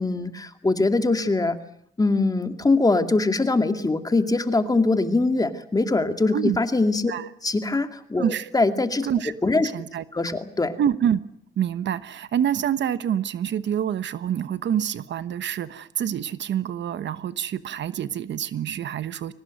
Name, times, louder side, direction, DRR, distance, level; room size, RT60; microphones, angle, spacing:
voice 1, 0.0-1.6 2.0-7.1 7.4-9.1 9.4-9.7 10.1-10.8, left 3 dB, 20° left, 7 dB, 2.3 m, -22 dB
voice 2, 8.2-8.5 9.0-10.0 10.8-11.2 11.6-19.3, right 9 dB, 65° right, 14 dB, 1.1 m, -26 dB
23.5 x 19.0 x 9.2 m, 0.71 s
cardioid pair, 90°, 20 cm